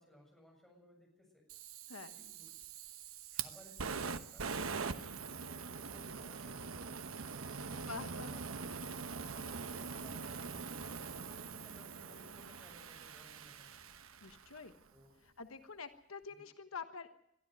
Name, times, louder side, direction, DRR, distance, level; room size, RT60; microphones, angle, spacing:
voice 1, 0.0-1.4 2.1-2.5 3.3-4.6 4.9-9.6 9.9-13.7 14.9-15.1 16.3-16.4, left 1 dB, ahead, 0 dB, 7.4 m, -62 dB
Fire, 1.5-14.6, right 5 dB, 85° right, 1.1 m, -43 dB
voice 2, 7.8-8.3 14.2-14.7 15.4-17.1, left 4 dB, 90° left, 9 dB, 1.3 m, -47 dB
22.5 x 13.5 x 9.2 m, 0.76 s
head